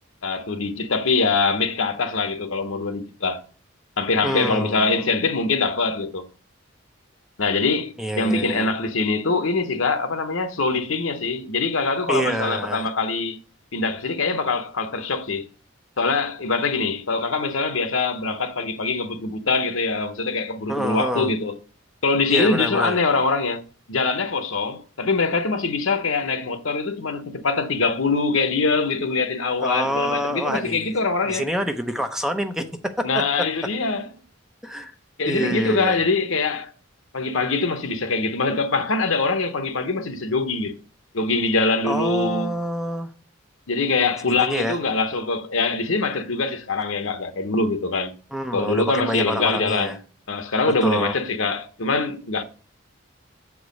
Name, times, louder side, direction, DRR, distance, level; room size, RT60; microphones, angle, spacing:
voice 1, 0.2-3.4 4.0-6.3 7.4-13.4 13.7-15.5 16.0-21.6 22.0-23.6 23.9-31.5 33.0-34.1 35.2-36.7 37.1-40.7 41.1-42.5 43.7-48.1 48.5-50.0 50.3-52.4, left 3 dB, 75° left, 0.9 m, -23 dB
voice 2, 4.2-5.1 8.0-8.7 12.1-12.9 20.7-21.3 22.3-23.0 29.6-30.9 31.3-33.2 34.6-34.9 35.3-36.0 41.8-43.1 44.3-44.8 48.3-50.0 50.8-51.2, equal, 5° right, 0.6 m, -27 dB
7.1 x 4.8 x 5.2 m
head